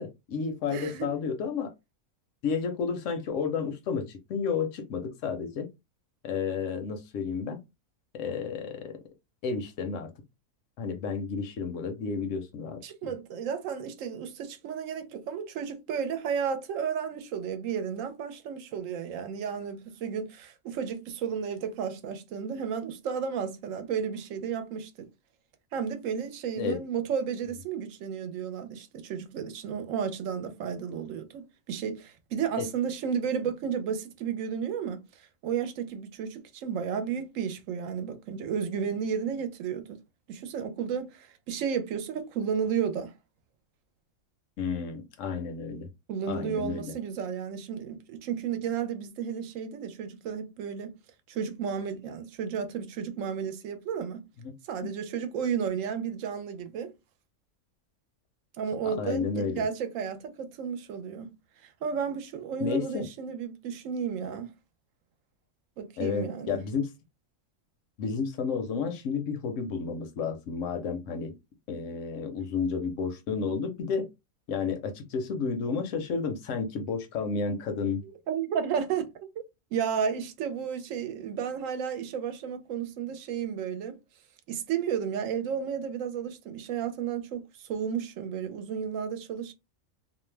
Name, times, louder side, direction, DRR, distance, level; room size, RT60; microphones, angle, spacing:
voice 1, 0.0-1.7 2.4-5.7 6.2-7.6 8.1-8.9 9.4-10.1 10.8-13.1 26.6-26.8 32.6-32.7 44.6-45.9 46.3-46.9 54.4-54.5 54.8-54.9 58.8-59.7 62.6-63.0 66.0-66.9 68.0-71.3 71.7-74.1 74.5-78.0, left 5 dB, 70° left, 0.9 m, -31 dB
voice 2, 0.7-1.1 12.8-25.1 25.7-40.0 40.3-43.1 46.1-50.9 51.3-54.2 54.7-56.9 58.6-61.3 61.6-64.5 65.8-66.6 78.0-79.1 79.7-84.0 84.5-89.5, right 7 dB, 75° right, 0.9 m, -33 dB
2.5 x 2.1 x 3.2 m
omnidirectional pair, 1.4 m